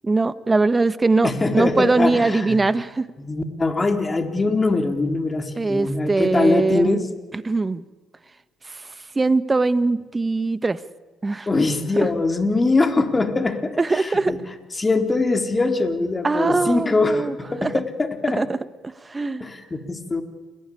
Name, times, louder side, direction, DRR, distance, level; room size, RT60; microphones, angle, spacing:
voice 1, 0.0-3.1 5.6-7.0 7.3-7.8 8.6-10.8 11.2-11.5 12.0-12.1 13.8-14.4 16.2-17.3 17.6-17.7 18.4-18.6 18.8-19.4, right 3 dB, 25° right, 14 dB, 1.5 m, -21 dB
voice 2, 1.2-2.6 3.2-7.0 11.5-14.4 14.8-18.4 19.4-20.2, left 3 dB, 25° left, 6 dB, 3.9 m, -22 dB
29.0 x 20.5 x 8.6 m, 1.3 s
hypercardioid pair, 60°, 0 cm